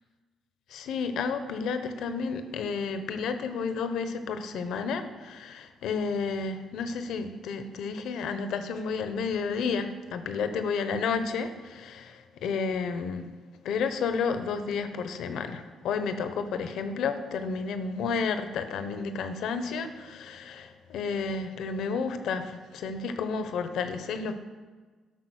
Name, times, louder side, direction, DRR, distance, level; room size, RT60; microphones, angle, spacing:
voice 1, 0.7-12.1 12.4-13.3 13.6-24.3, left 5 dB, 80° left, 9 dB, 0.9 m, -31 dB
12.0 x 5.8 x 6.4 m, 1.4 s
cardioid pair, 90°, 0 cm